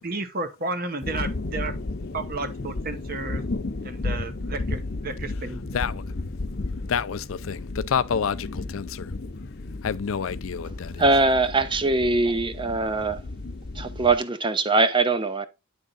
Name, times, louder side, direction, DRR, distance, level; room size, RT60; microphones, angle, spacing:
voice 1, 0.0-1.7 2.1-3.4 3.8-5.6, right 3 dB, 45° right, 1.0 m, -32 dB
sound 1, 1.0-14.2, left 2 dB, 50° left, 0.8 m, -33 dB
voice 2, 6.9-9.1 9.8-11.2, left 7 dB, 75° left, 0.4 m, -28 dB
voice 3, 11.0-13.2 13.8-15.5, right 3 dB, 25° right, 0.7 m, -22 dB
9.9 x 3.7 x 3.9 m
head